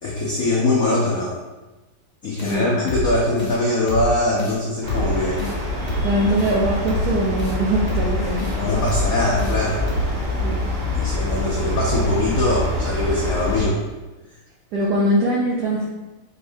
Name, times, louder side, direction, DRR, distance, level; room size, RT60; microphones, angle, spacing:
voice 1, 0.0-1.4 2.2-5.4 8.6-9.8 10.9-13.8, left 2 dB, 75° left, -5 dB, 0.8 m, -22 dB
sound 1, 2.4-2.6 2.9-3.1 3.4-3.6 3.9-4.1 4.4-4.6 4.9-5.1 5.4-5.6 5.9-6.1 6.4-6.5 6.9-7.1 7.4-7.6 7.9-8.1 8.4-8.6 8.9-9.1 9.4-9.6 9.9-10.1, left 2 dB, 55° left, 1.5 m, -26 dB
sound 2, 4.8-13.6, left 1 dB, 55° right, 2.1 m, -25 dB
voice 2, 6.0-8.5 10.4-10.5 14.7-15.9, right 1 dB, 90° right, -4 dB, 0.8 m, -21 dB
5.1 x 3.4 x 2.6 m, 1.1 s
omnidirectional pair, 2.4 m